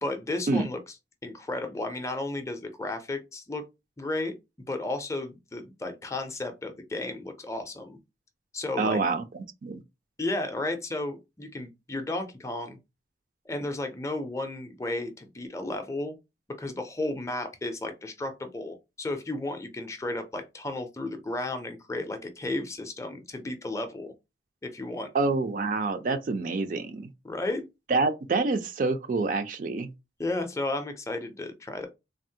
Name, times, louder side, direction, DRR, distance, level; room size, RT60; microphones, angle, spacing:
voice 1, 0.0-0.8 1.2-3.6 4.0-4.3 4.7-8.0 8.5-9.0 10.2-12.8 13.5-16.1 16.6-24.1 24.6-25.1 27.2-27.6 30.2-31.9, left 2 dB, 15° left, 0.4 m, -33 dB
voice 2, 8.8-9.2 9.6-9.8 25.1-27.1 27.9-29.9, right 3 dB, 50° right, 0.4 m, -27 dB
3.4 x 2.0 x 2.7 m
head